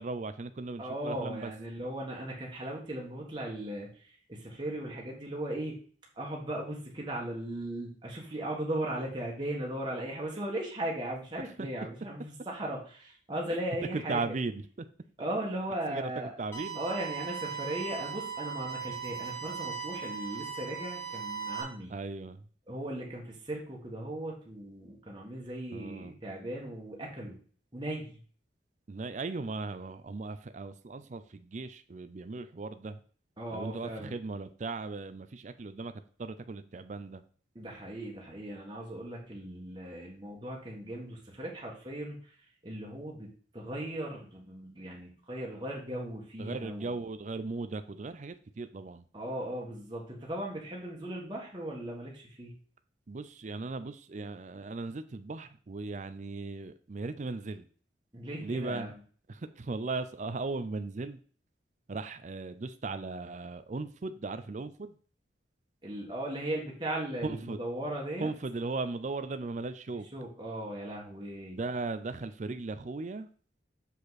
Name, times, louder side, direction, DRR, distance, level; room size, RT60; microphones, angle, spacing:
voice 1, 0.0-1.5 11.6-11.7 13.9-14.9 15.9-16.8 21.9-22.4 25.7-26.1 28.9-33.0 33.5-35.9 36.2-37.2 46.4-49.0 53.1-57.7 58.4-58.9 59.3-61.2 61.9-64.9 67.2-67.6 68.2-70.1 71.6-73.3, right 3 dB, 40° right, 11 dB, 0.4 m, -37 dB
voice 2, 0.8-5.8 6.1-14.3 15.2-16.3 16.7-21.9 22.7-27.4 27.7-28.2 33.4-34.1 37.5-42.3 42.6-46.9 49.1-52.6 58.1-58.9 65.8-68.3 70.1-71.6, right 1 dB, 25° right, -2 dB, 1.5 m, -37 dB
sound 1, 16.5-21.6, right 6 dB, 15° left, 1.7 m, -38 dB
6.7 x 5.1 x 4.1 m, 0.43 s
head